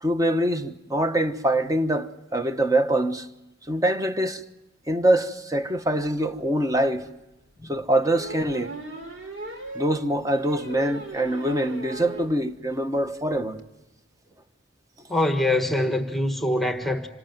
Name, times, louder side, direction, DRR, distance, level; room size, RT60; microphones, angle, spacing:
voice 1, 0.0-3.3 3.7-4.4 4.9-7.1 7.7-8.7 9.7-13.6, right 1 dB, 20° right, 1.1 m, -24 dB
sound 1, 6.7-6.8 8.0-12.3 12.7-12.8 13.1-13.2 13.3-13.6, right 1 dB, 85° right, 3.1 m, -38 dB
voice 2, 15.1-17.1, left 1 dB, ahead, 1.4 m, -24 dB
26.5 x 19.0 x 9.2 m
head